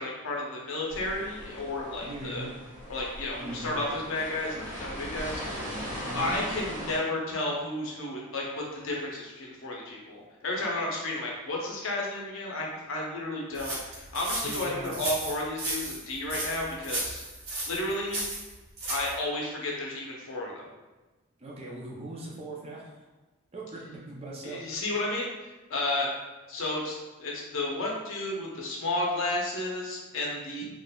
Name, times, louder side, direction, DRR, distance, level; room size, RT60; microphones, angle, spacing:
voice 1, 0.0-2.5 2.9-5.8 6.1-17.2 17.7-18.2 18.9-20.7 24.4-25.3 25.7-26.1 26.5-30.6, left 2 dB, 60° left, -2 dB, 0.6 m, -32 dB
sound 1, 0.9-7.0, equal, 10° right, 1.3 m, -39 dB
voice 2, 2.0-2.5 3.4-3.7 6.1-6.4 14.4-15.0 21.4-22.9 23.5-24.8, right 2 dB, 25° right, -3 dB, 0.5 m, -40 dB
sound 2, 13.5-19.2, right 1 dB, 80° right, 0.9 m, -34 dB
3.5 x 2.4 x 2.2 m, 1.2 s
head